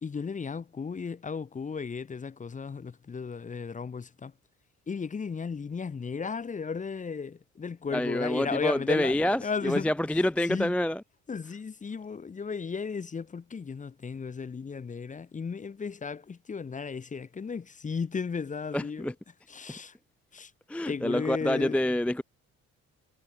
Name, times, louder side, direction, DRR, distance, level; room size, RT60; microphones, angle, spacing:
voice 1, 0.0-4.3 4.9-9.9 10.5-10.7 11.3-19.1 19.5-19.9 20.3-20.5 20.9-21.8, left 5 dB, 25° left, 0.7 m, -35 dB
voice 2, 7.9-11.0 18.7-19.1 20.7-22.2, left 1 dB, 5° left, 0.4 m, -27 dB
cardioid pair, 90°, 30 cm